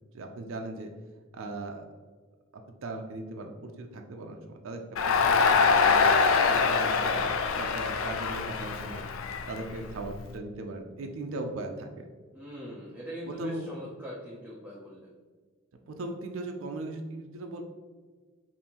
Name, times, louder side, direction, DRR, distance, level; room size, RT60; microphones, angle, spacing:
voice 1, 0.1-0.9 1.3-1.8 2.5-6.0 6.5-9.0 9.5-12.1 13.3-13.8 15.9-17.6, right 2 dB, 70° right, 4 dB, 0.4 m, -38 dB
Crowd, 5.0-10.2, left 5 dB, 70° left, 0.4 m, -24 dB
voice 2, 12.3-15.1, equal, 10° right, -5 dB, 0.5 m, -41 dB
5.2 x 2.6 x 2.9 m, 1.4 s
head